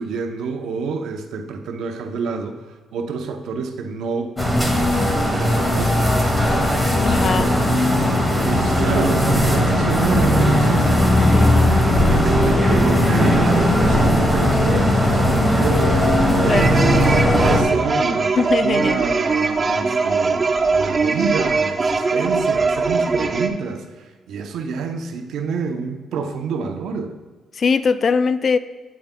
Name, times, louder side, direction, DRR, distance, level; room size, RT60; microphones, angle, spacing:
voice 1, 0.0-6.7 7.2-11.5 12.0-27.2, right 5 dB, 80° right, 0.7 m, -28 dB
sound 1, 4.4-17.6, left 1 dB, 10° left, 2.0 m, -17 dB
voice 2, 7.0-7.5 11.3-11.8 16.4-16.9 18.4-19.0 27.5-28.6, left 5 dB, 50° left, 0.4 m, -21 dB
sound 2, 16.4-23.5, right 4 dB, 40° right, 0.7 m, -21 dB
8.7 x 8.5 x 2.2 m
cardioid pair, 70°, 0 cm